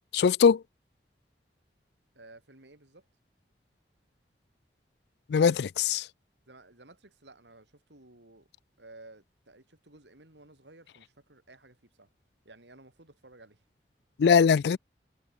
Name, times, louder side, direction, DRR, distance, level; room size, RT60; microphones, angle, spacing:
voice 1, 0.1-0.6 5.3-6.1 14.2-14.8, left 6 dB, 75° left, 0.3 m, -21 dB
voice 2, 2.1-3.0 6.5-8.5 8.8-12.1 12.4-13.6, right 2 dB, 85° right, 4.2 m, -54 dB
head